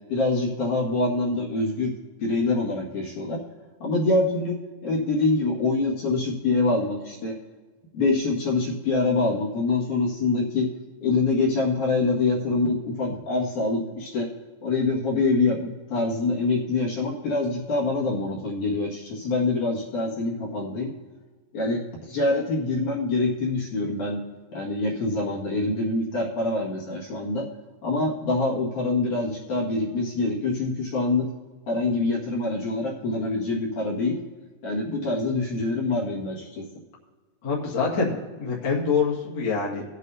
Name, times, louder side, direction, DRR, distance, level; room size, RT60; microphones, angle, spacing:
voice 1, 0.1-1.9 2.2-3.4 3.8-4.6 4.8-7.4 7.9-10.7 11.0-14.3 14.6-20.9 21.5-24.2 24.5-27.5 27.8-31.3 31.7-34.2 34.6-36.6, left 3 dB, 60° left, -4 dB, 3.2 m, -25 dB
voice 2, 37.4-39.8, left 5 dB, 40° left, -4 dB, 2.2 m, -25 dB
19.0 x 8.3 x 2.7 m, 1.3 s
omnidirectional pair, 4.0 m